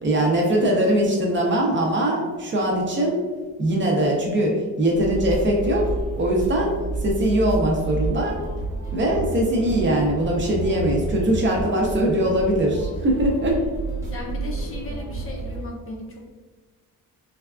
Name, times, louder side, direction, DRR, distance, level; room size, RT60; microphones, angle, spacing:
voice 1, 0.0-3.2 3.6-8.4 8.9-13.6, right 1 dB, 35° right, -1 dB, 0.5 m, -21 dB
sound 1, 4.9-15.6, right 3 dB, 10° right, 0.9 m, -30 dB
voice 2, 14.1-16.2, left 2 dB, 40° left, 0 dB, 0.5 m, -36 dB
3.3 x 2.3 x 2.3 m, 1.3 s
wide cardioid pair, 150°, 34 cm